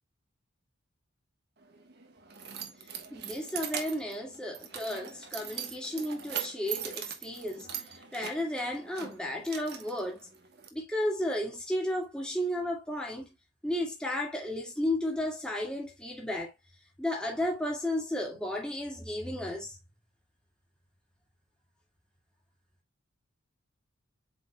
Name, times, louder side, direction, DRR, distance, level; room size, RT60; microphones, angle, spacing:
Keys jangling, 1.6-10.7, right 8 dB, 50° right, 1.3 m, -41 dB
voice 1, 3.1-10.3 10.7-13.3 13.6-16.5 17.0-19.8, left 1 dB, 5° left, 1.9 m, -33 dB
7.9 x 5.4 x 2.3 m
head